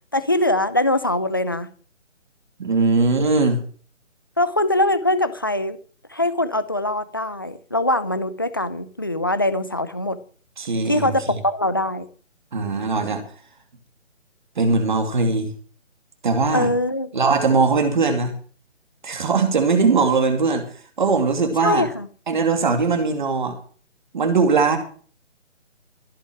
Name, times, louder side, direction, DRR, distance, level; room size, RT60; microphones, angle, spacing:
voice 1, 0.1-1.7 4.4-5.8 6.1-10.2 10.9-12.1 16.5-17.1 21.6-22.1, left 1 dB, 20° left, 12 dB, 0.6 m, -22 dB
voice 2, 2.6-3.6 10.6-11.1 12.5-13.2 14.6-15.5 16.2-16.7 17.1-18.3 19.0-20.7 21.0-21.9 22.3-23.6 24.1-24.8, right 4 dB, 40° right, 6 dB, 2.5 m, -20 dB
15.5 x 6.3 x 8.6 m, 0.43 s
figure-of-eight pair, 160°, 38 cm